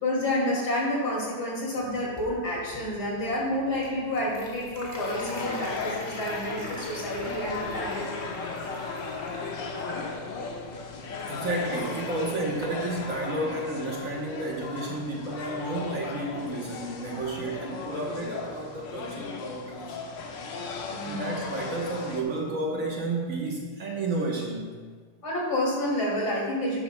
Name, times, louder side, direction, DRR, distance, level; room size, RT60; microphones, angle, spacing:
voice 1, 0.0-8.0 20.3-20.4 20.9-21.4 25.2-26.8, left 1 dB, 65° left, -4 dB, 3.0 m, -29 dB
sound 1, 1.8-11.3, left 1 dB, 15° left, 1.3 m, -43 dB
sound 2, 5.0-22.2, left 4 dB, 90° left, 1.6 m, -36 dB
voice 2, 11.3-19.9 21.0-24.8, right 2 dB, 50° right, -1 dB, 1.4 m, -31 dB
11.5 x 9.9 x 2.2 m, 1.6 s
omnidirectional pair, 1.9 m